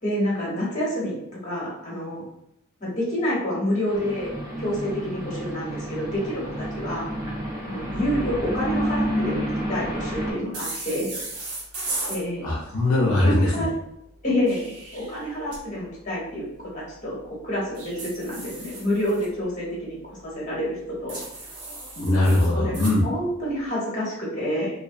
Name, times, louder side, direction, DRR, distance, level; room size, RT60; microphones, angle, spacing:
voice 1, 0.0-1.2 1.4-2.2 2.8-4.3 4.6-7.0 7.6-11.1 12.1-12.4 13.2-13.7 14.2-20.0 20.3-21.3 22.5-24.7, equal, 35° left, -6 dB, 0.9 m, -28 dB
sound 1, 3.9-10.3, equal, 35° right, 1.1 m, -30 dB
sound 2, 10.5-12.2 14.2-15.6 17.7-19.3 21.1-23.0, right 2 dB, 75° right, 0.7 m, -35 dB
voice 2, 12.4-13.7 22.0-23.0, left 1 dB, 75° left, -3 dB, 0.5 m, -21 dB
2.4 x 2.1 x 2.5 m, 0.78 s
head